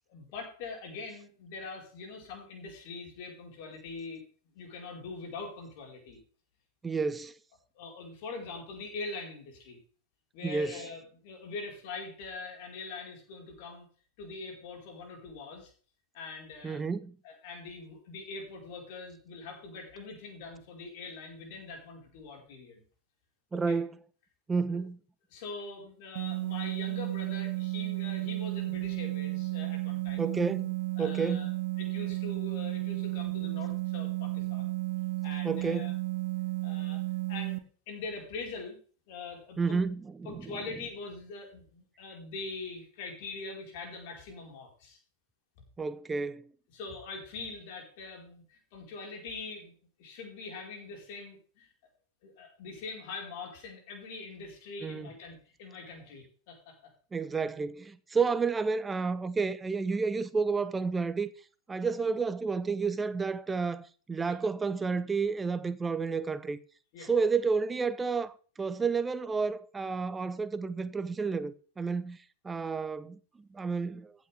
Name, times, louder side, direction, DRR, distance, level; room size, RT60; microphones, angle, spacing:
voice 1, 0.1-4.2 4.5-6.2 7.7-9.8 10.3-13.9 14.2-15.7 16.1-16.8 17.2-22.8 23.7-23.8 24.7-24.8 25.3-30.3 31.0-31.5 31.8-34.7 35.2-35.9 36.6-37.0 37.3-37.6 37.9-38.8 39.1-39.8 40.2-45.0 46.7-49.7 50.0-51.7 52.2-56.9 64.2-64.4 66.9-67.1, left 3 dB, 50° left, 4.8 m, -43 dB
voice 2, 6.8-7.3 10.4-10.8 16.6-17.2 23.5-23.9 24.5-25.0 30.2-31.5 35.4-36.0 39.6-40.5 45.8-46.5 54.8-55.1 57.1-61.3 61.7-66.6 67.0-72.2 72.4-74.1, right 4 dB, 15° right, 0.9 m, -31 dB
sound 1, 26.2-37.6, right 22 dB, 55° right, 1.1 m, -33 dB
15.0 x 8.6 x 3.5 m
figure-of-eight pair, 90°, 0 cm